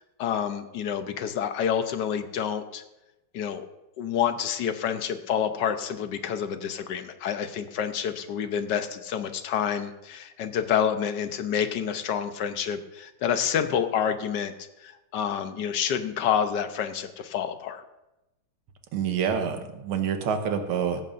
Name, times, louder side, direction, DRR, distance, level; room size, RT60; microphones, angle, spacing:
voice 1, 0.0-2.8 3.3-3.7 4.0-14.5 14.8-17.8, left 8 dB, 65° left, 9 dB, 1.2 m, -28 dB
voice 2, 18.9-21.0, right 7 dB, 75° right, 6 dB, 1.9 m, -27 dB
17.0 x 14.0 x 2.6 m, 0.96 s
omnidirectional pair, 2.4 m